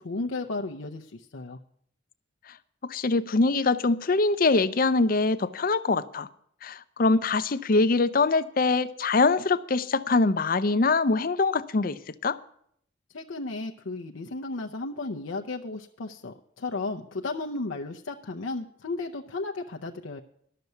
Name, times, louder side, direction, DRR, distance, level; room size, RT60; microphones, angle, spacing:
voice 1, 0.0-1.6 13.1-20.2, left 3 dB, 85° left, 0.7 m, -34 dB
voice 2, 2.8-6.3 6.6-12.4, left 3 dB, 45° left, 0.5 m, -23 dB
12.0 x 6.8 x 9.3 m
head